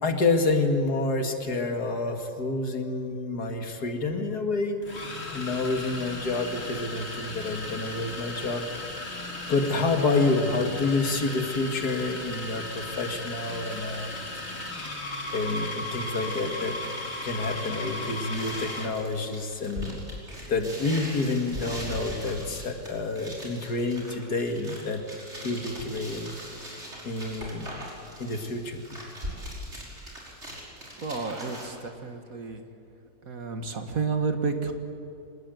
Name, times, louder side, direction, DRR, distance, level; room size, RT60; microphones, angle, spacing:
voice 1, 0.0-4.9 5.3-8.7 9.1-9.2 9.5-14.4 15.3-16.8 17.2-20.0 20.5-25.0 25.4-26.8 27.0-27.7 28.2-28.8, left 3 dB, 75° left, 5 dB, 2.6 m, -28 dB
sound 1, 3.6-3.7 4.8-19.0, left 2 dB, 40° left, 2.9 m, -36 dB
sound 2, 18.3-31.7, equal, 45° right, 5.9 m, -40 dB
voice 2, 31.0-32.6 33.3-34.7, right 4 dB, 60° right, 6 dB, 2.3 m, -30 dB
26.5 x 20.0 x 9.3 m, 2.6 s
omnidirectional pair, 1.7 m